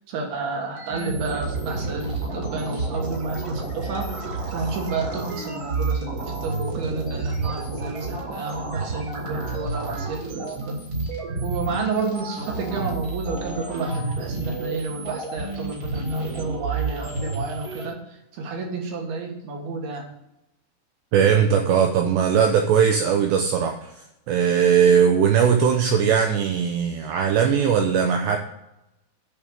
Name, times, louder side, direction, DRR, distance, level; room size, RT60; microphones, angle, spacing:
voice 1, 0.1-4.1 4.5-10.8 11.4-20.0, right 3 dB, 65° right, 2 dB, 2.9 m, -30 dB
sound 1, 0.8-17.9, right 3 dB, 35° right, 2.1 m, -30 dB
voice 2, 21.1-23.9 24.3-28.4, right 7 dB, 85° right, 4 dB, 2.4 m, -19 dB
10.5 x 5.4 x 6.4 m, 0.87 s
omnidirectional pair, 6.0 m